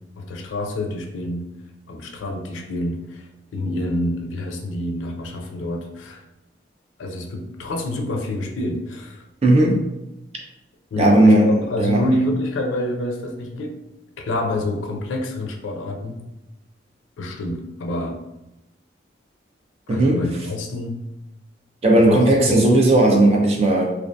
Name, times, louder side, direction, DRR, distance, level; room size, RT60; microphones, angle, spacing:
voice 1, 0.2-1.5 1.9-6.2 7.0-9.3 10.9-13.8 14.2-16.2 17.2-18.2 19.9-21.0 21.9-22.6, left 1 dB, 85° left, 4 dB, 0.4 m, -27 dB
voice 2, 9.4-9.8 11.0-11.5 11.8-12.0 19.9-20.2 21.8-24.0, right 1 dB, 35° right, 0 dB, 0.4 m, -15 dB
2.3 x 2.2 x 2.5 m, 0.93 s
head